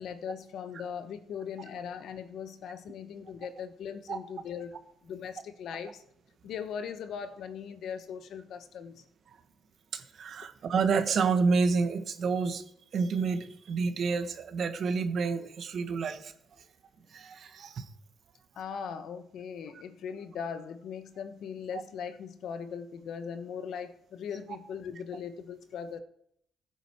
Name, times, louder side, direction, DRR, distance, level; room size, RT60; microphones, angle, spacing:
voice 1, 0.0-4.7 5.0-6.0 6.4-9.0 18.5-26.0, left 7 dB, 75° left, 9 dB, 1.2 m, -39 dB
voice 2, 9.9-12.6 12.9-16.3 17.1-17.8, right 4 dB, 60° right, 8 dB, 1.5 m, -29 dB
16.0 x 9.1 x 4.7 m, 0.71 s
cardioid pair, 90°, 0 cm